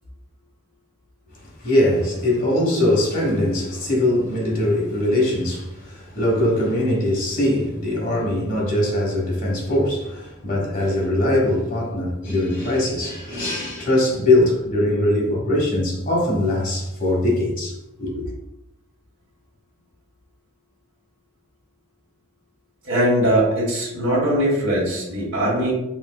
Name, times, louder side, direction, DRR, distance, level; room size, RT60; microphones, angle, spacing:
voice 1, 1.6-18.3, left 1 dB, 45° left, 1.3 m, -21 dB
voice 2, 22.8-25.7, right 1 dB, 80° right, 1.4 m, -20 dB
5.1 x 3.2 x 2.3 m
head